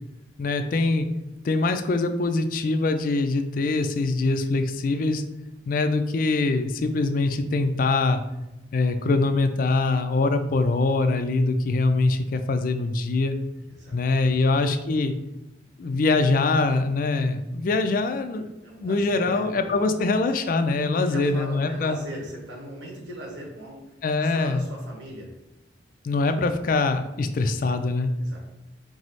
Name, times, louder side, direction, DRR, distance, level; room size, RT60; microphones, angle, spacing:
voice 1, 0.4-1.1 1.4-5.2 5.7-8.2 8.7-13.4 13.9-15.1 15.8-18.4 18.8-22.0 24.0-24.6 26.0-28.1, left 3 dB, 50° left, 7 dB, 0.3 m, -23 dB
voice 2, 13.7-14.3 18.6-19.9 20.8-23.9 24.2-25.3 28.2-28.4, right 1 dB, 90° right, -1 dB, 1.2 m, -39 dB
4.7 x 2.0 x 4.0 m, 0.94 s
head